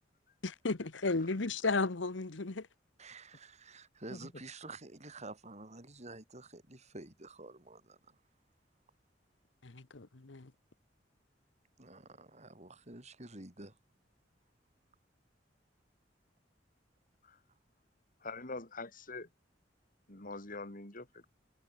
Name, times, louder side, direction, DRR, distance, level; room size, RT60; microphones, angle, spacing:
voice 1, 0.4-2.7 9.6-10.5, left 3 dB, 80° left, 1.2 m, -34 dB
voice 2, 3.0-8.2 11.8-13.8, right 2 dB, 40° right, 5.5 m, -50 dB
voice 3, 18.2-19.3 20.1-21.3, left 3 dB, 50° left, 3.3 m, -44 dB
head